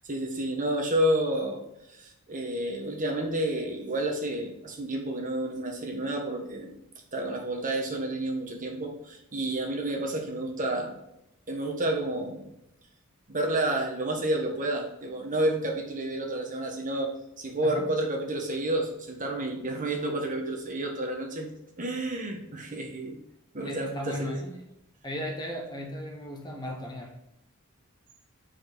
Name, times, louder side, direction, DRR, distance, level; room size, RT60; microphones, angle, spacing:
voice 1, 0.1-1.6 1.9-6.7 7.1-11.0 11.5-12.5 13.3-17.1 17.4-21.5 21.8-23.2 23.5-24.4, right 1 dB, 40° right, 2 dB, 1.3 m, -30 dB
voice 2, 23.6-24.7 25.0-27.2, equal, 20° left, 1 dB, 1.2 m, -36 dB
7.5 x 4.7 x 4.1 m, 0.82 s
head